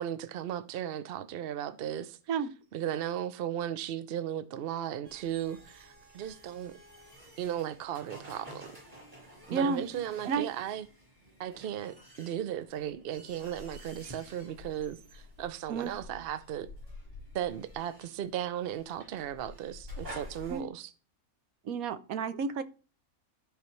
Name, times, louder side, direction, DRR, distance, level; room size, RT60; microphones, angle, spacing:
voice 1, 0.0-2.2 2.7-6.7 7.4-8.7 9.5-10.9 11.4-16.7 17.3-20.9, right 10 dB, 60° right, 0.6 m, -36 dB
sound 1, 5.0-20.6, left 1 dB, 25° right, 5.1 m, -50 dB
voice 2, 9.5-9.8 10.2-10.5 15.7-15.9 20.5-20.6 21.6-22.6, right 5 dB, 75° right, 1.2 m, -31 dB
13.5 x 4.9 x 3.2 m
omnidirectional pair, 1.5 m